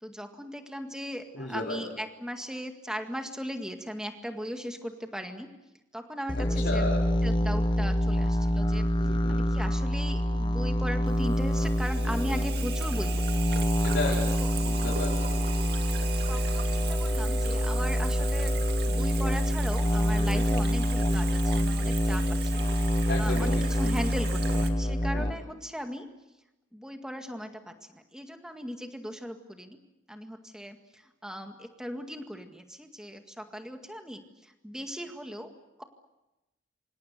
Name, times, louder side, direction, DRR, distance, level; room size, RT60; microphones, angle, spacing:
voice 1, 0.0-5.5 5.9-6.8 7.2-8.9 9.3-13.2 14.2-14.5 16.3-18.5 18.9-22.7 23.2-26.1 26.7-29.8 30.1-35.5 35.8-35.9, equal, 5° right, 5 dB, 1.9 m, -38 dB
voice 2, 1.3-1.9 6.4-7.0 9.0-9.5 13.8-14.3 14.6-15.4 23.1-23.5 23.8-24.0 25.1-25.4, left 2 dB, 65° left, -3 dB, 4.1 m, -34 dB
sound 1, 6.3-25.3, left 1 dB, 25° left, 1.0 m, -26 dB
Water tap faucet / Sink (filling or washing), 11.1-24.7, right 8 dB, 55° right, 2.3 m, -39 dB
27.5 x 25.5 x 6.9 m, 0.99 s
head